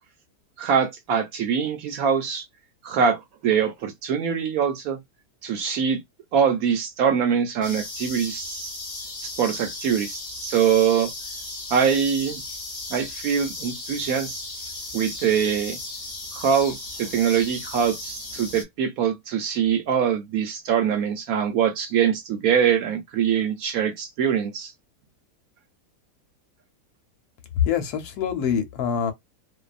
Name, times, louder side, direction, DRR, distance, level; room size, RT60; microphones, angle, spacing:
voice 1, 0.6-2.4 2.8-5.0 5.4-6.0 6.3-8.7 9.2-11.1 11.7-12.4 12.9-14.4 14.9-15.8 16.3-24.7, right 7 dB, 70° right, 0.9 m, -23 dB
sound 1, 7.6-18.6, left 2 dB, 40° left, 0.5 m, -36 dB
voice 2, 27.6-29.1, left 7 dB, 75° left, 1.1 m, -25 dB
2.6 x 2.2 x 2.4 m
omnidirectional pair, 1.8 m